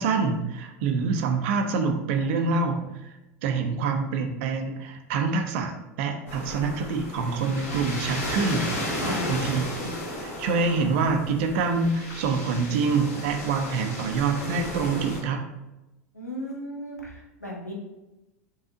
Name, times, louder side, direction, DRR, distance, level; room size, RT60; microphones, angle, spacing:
voice 1, 0.0-3.1 3.4-8.6 8.9-9.9 10.2-15.4, right 4 dB, 50° right, 4 dB, 0.6 m, -26 dB
sound 1, 6.3-15.2, left 1 dB, 60° left, 1.4 m, -34 dB
voice 2, 16.2-17.0 17.4-17.7, left 1 dB, 85° left, -2 dB, 1.0 m, -34 dB
5.7 x 2.4 x 3.7 m, 0.99 s
figure-of-eight pair, 80°, 8 cm